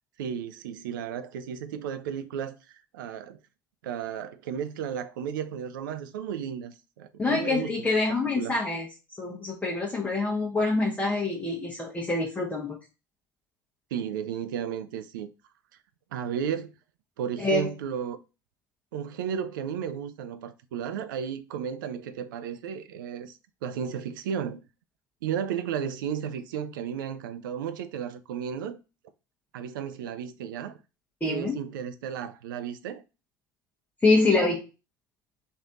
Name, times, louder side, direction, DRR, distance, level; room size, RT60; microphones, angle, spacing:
voice 1, 0.2-3.4 3.8-7.9 8.4-8.6 13.9-15.3 16.1-16.7 17.2-18.2 18.9-23.3 23.6-24.6 25.2-28.8 29.5-30.8 31.3-33.0, right 8 dB, 70° right, 0.4 m, -34 dB
voice 2, 7.2-8.9 9.2-12.8 17.4-17.7 31.2-31.6 34.0-34.6, left 3 dB, 15° left, 0.9 m, -25 dB
3.2 x 2.7 x 3.7 m
figure-of-eight pair, 65°, 11 cm